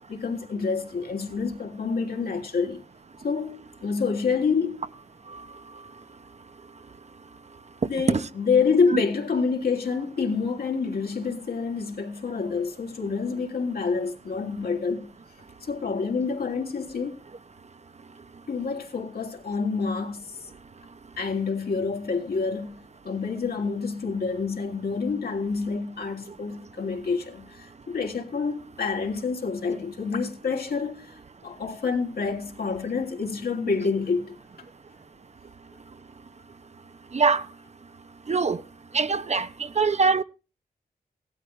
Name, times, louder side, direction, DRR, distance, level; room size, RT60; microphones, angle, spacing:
voice 1, 0.1-2.8 3.2-4.9 7.9-15.1 15.6-17.2 18.5-20.3 21.2-22.8 23.0-34.4 39.3-39.4, left 5 dB, 70° left, 3.0 m, -27 dB
voice 2, 38.3-38.6 38.9-39.5 39.8-40.2, right 4 dB, 45° right, 0.8 m, -22 dB
16.5 x 12.5 x 3.2 m
cardioid pair, 75°, 16 cm